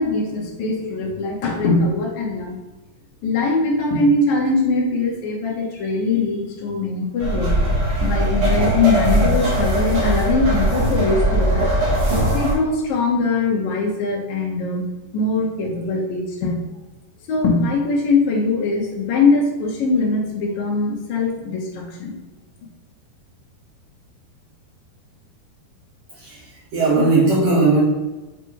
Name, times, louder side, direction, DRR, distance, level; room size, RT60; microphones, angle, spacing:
voice 1, 0.0-2.6 3.2-7.5 8.0-11.7 12.3-14.8 15.1-16.5 17.3-22.1, left 3 dB, 80° left, -3 dB, 1.6 m, -21 dB
sound 1, 7.2-12.5, right 1 dB, 60° right, 2.3 m, -19 dB
voice 2, 26.7-27.8, right 3 dB, 85° right, -6 dB, 1.5 m, -17 dB
7.7 x 2.7 x 4.6 m, 1.1 s
omnidirectional pair, 4.8 m